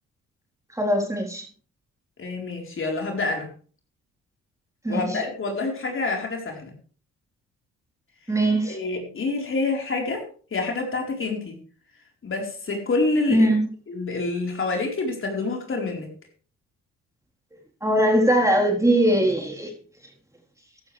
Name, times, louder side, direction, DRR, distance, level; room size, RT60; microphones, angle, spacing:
voice 1, 0.7-1.4 4.8-5.2 8.3-8.8 13.3-13.7 17.8-19.7, right 1 dB, 10° right, 0 dB, 3.9 m, -21 dB
voice 2, 2.2-3.5 4.9-6.7 8.6-10.2 10.5-11.6 12.2-13.5 13.9-16.1, left 3 dB, 45° left, 1 dB, 4.2 m, -27 dB
14.5 x 12.0 x 3.4 m, 0.41 s
cardioid pair, 90°, 30 cm